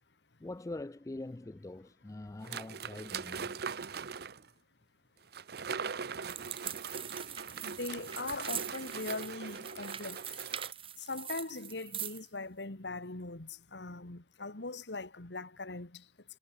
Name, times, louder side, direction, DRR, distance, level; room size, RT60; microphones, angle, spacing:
voice 1, 0.4-3.6, left 2 dB, 20° left, 0.4 m, -43 dB
sound 1, 2.4-4.5 5.3-10.7, right 6 dB, 65° right, 0.8 m, -41 dB
sound 2, 6.2-12.3, right 9 dB, 30° right, 2.2 m, -42 dB
voice 2, 7.6-10.2 11.0-16.1, left 3 dB, 80° left, 2.0 m, -40 dB
head